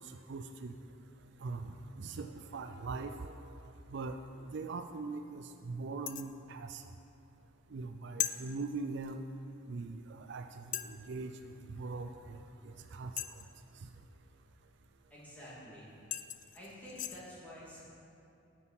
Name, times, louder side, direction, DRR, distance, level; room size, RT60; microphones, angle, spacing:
voice 1, 0.3-0.7 1.4-3.5 3.9-4.2 4.5-6.8 7.7-9.2 9.7-11.3 11.7-12.4 12.6-13.1, right 3 dB, 60° right, 7 dB, 0.4 m, -41 dB
sound 1, 6.1-6.4 8.2-8.4 9.8-9.9 10.7-11.0 13.2-13.6 15.6-15.7 16.1-17.2, left 12 dB, 40° left, 0.4 m, -38 dB
voice 2, 15.1-15.9 16.5-17.8, equal, 10° left, -8 dB, 2.8 m, -49 dB
9.7 x 7.7 x 5.9 m, 2.9 s
head